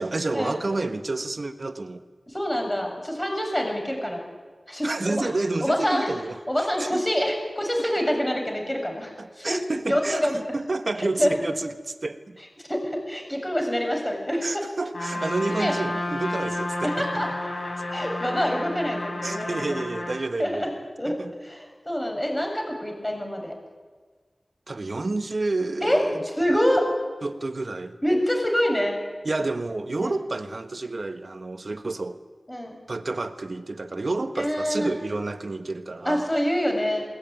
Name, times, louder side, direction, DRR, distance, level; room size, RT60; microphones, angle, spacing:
voice 1, 0.0-2.0 4.8-6.4 6.8-7.0 7.8-7.9 9.2-12.4 14.4-17.1 19.2-20.8 21.0-21.3 24.7-26.2 27.2-28.0 29.2-32.2 32.9-36.3, right 2 dB, 55° right, 8 dB, 1.4 m, -30 dB
voice 2, 2.3-4.2 4.7-5.3 5.6-6.1 6.5-9.6 9.9-10.4 11.2-11.4 12.7-14.6 15.6-15.8 16.8-17.3 17.9-19.6 19.9-20.0 20.4-20.7 21.0-23.5 25.8-26.0 26.4-26.9 28.0-29.0 30.0-30.2 32.5-32.8 34.4-34.9 36.1-37.1, equal, 15° left, 2 dB, 7.0 m, -26 dB
Trumpet, 14.9-20.2, left 1 dB, 75° left, 6.3 m, -31 dB
21.5 x 19.0 x 9.4 m, 1.4 s
wide cardioid pair, 60°, 0 cm